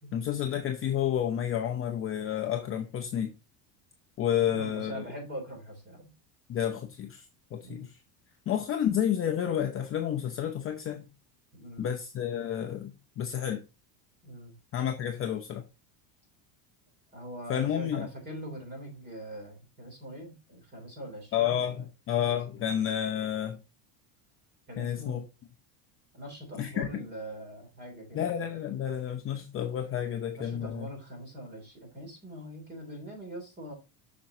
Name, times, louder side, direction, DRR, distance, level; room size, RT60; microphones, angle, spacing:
voice 1, 0.1-3.3 4.2-5.0 6.5-7.2 7.5-8.0 8.5-11.1 11.8-13.6 14.7-15.6 17.5-18.1 21.3-23.6 24.8-25.2 26.6-26.9 28.1-30.9, left 10 dB, 30° left, 0.6 m, -30 dB
voice 2, 4.5-6.1 7.6-7.9 11.5-11.9 14.2-14.5 17.1-21.8 22.5-22.7 24.7-25.2 26.1-28.3 30.4-33.7, equal, 20° right, 3.0 m, -42 dB
7.3 x 6.1 x 2.7 m
cardioid pair, 155°, 48 cm